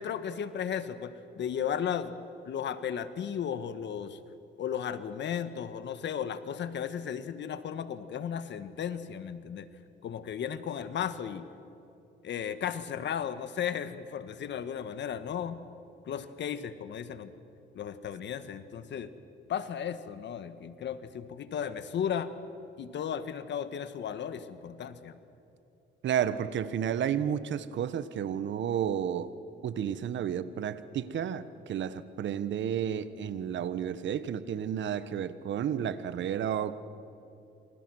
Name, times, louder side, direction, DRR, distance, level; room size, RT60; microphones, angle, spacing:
voice 1, 0.0-2.1 2.4-4.2 4.6-9.7 10.0-11.5 12.2-15.6 16.0-17.3 17.7-19.1 19.5-22.3 22.8-25.2, left 8 dB, 65° left, 12 dB, 1.5 m, -35 dB
voice 2, 26.0-29.3 29.6-36.8, right 9 dB, 70° right, 14 dB, 1.3 m, -31 dB
28.0 x 27.0 x 6.3 m, 2.8 s
cardioid pair, 90°, 20 cm